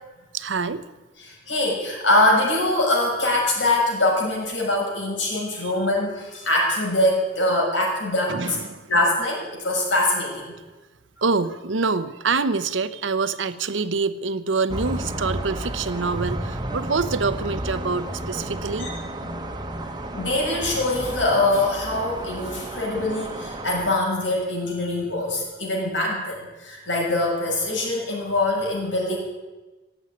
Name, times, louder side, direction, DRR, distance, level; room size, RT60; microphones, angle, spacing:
voice 1, 0.3-0.8 5.6-5.7 8.3-8.9 11.2-18.9, right 4 dB, 85° right, 12 dB, 0.9 m, -26 dB
voice 2, 1.2-8.3 8.9-10.5 18.8-18.9 20.2-29.2, left 2 dB, 85° left, -2 dB, 6.4 m, -23 dB
sound 1, 14.7-24.0, right 1 dB, 25° right, 1.3 m, -32 dB
17.0 x 8.2 x 9.7 m, 1.2 s
head